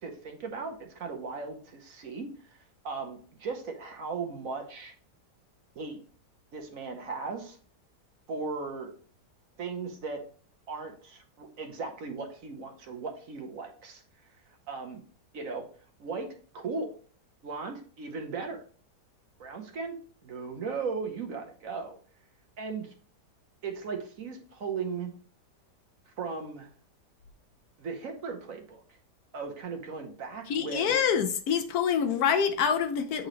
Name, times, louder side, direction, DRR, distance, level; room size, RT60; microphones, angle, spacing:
voice 1, 0.0-2.6 2.8-4.9 5.7-6.0 6.5-7.6 8.3-8.9 9.6-10.2 10.7-14.0 14.7-15.0 15.3-15.6 16.0-16.3 16.5-16.9 17.4-18.6 19.4-20.0 20.2-22.0 22.6-22.9 23.6-25.1 26.2-26.7 27.8-28.8 29.3-30.8, right 4 dB, 60° right, 1.2 m, -37 dB
voice 2, 30.5-33.3, left 7 dB, 70° left, 1.0 m, -26 dB
7.9 x 3.9 x 3.1 m
omnidirectional pair, 1.8 m